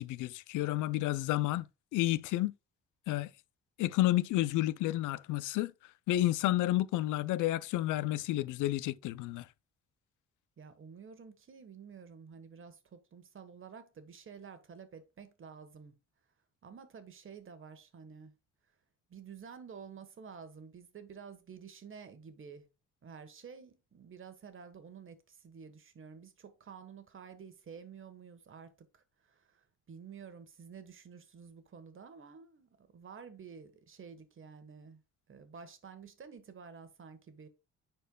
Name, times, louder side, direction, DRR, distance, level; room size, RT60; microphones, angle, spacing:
voice 1, 0.0-1.6 1.9-2.5 3.1-3.3 3.8-5.7 6.1-9.4, left 15 dB, 85° left, 0.5 m, -30 dB
voice 2, 10.6-16.0 16.6-18.3 19.1-22.7 23.0-35.0 35.3-37.5, right 6 dB, 45° right, 1.3 m, -51 dB
10.0 x 4.5 x 2.3 m
cardioid pair, 90°, 30 cm